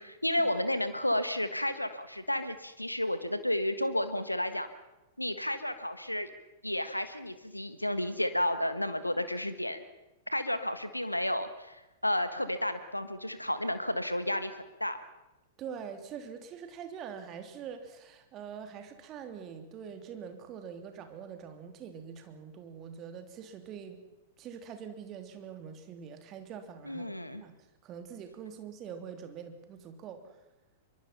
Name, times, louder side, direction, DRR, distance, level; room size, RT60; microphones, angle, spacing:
voice 1, 0.0-4.7 5.2-6.3 6.6-9.8 10.3-15.0 26.8-27.4, left 1 dB, 90° left, 11 dB, 1.4 m, -32 dB
voice 2, 15.6-24.0 24.4-27.1 27.4-27.5 27.8-30.4, right 7 dB, 30° right, 7 dB, 3.1 m, -44 dB
25.0 x 23.5 x 5.7 m, 1.0 s
figure-of-eight pair, 100°, 0 cm